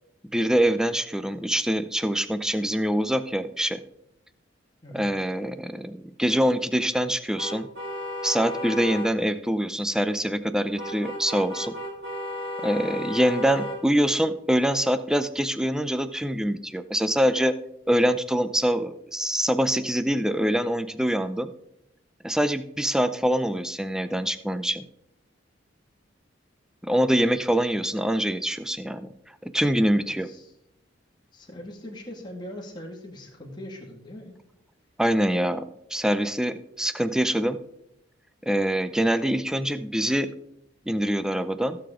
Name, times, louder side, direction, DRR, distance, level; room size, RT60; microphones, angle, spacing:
voice 1, 0.3-3.8 4.9-7.7 8.2-11.7 12.6-17.5 17.9-21.5 22.2-24.9 26.8-29.1 29.4-30.3 35.0-37.6 38.4-40.3 40.9-41.8, equal, 5° right, 11 dB, 0.5 m, -24 dB
sound 1, 7.4-9.1 10.8-13.8, left 1 dB, 75° right, 3.6 m, -33 dB
voice 2, 30.2-30.5 31.3-34.3, left 1 dB, 25° left, -2 dB, 2.1 m, -41 dB
16.0 x 6.9 x 3.8 m, 0.81 s
head